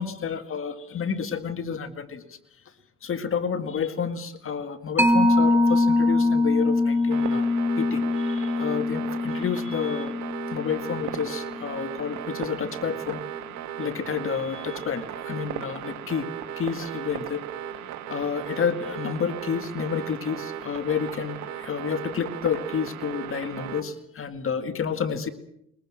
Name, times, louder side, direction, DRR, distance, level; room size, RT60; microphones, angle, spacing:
voice 1, 0.0-2.4 3.0-7.5 7.8-10.1 10.5-13.2 13.8-16.3 16.6-17.4 18.1-25.3, left 7 dB, 45° left, 9 dB, 2.0 m, -30 dB
Mallet percussion, 5.0-12.0, left 2 dB, 5° right, 2.1 m, -23 dB
sound 1, 7.1-23.8, right 10 dB, 75° right, 1.8 m, -36 dB
22.0 x 21.0 x 7.6 m, 0.75 s
cardioid pair, 105°, 29 cm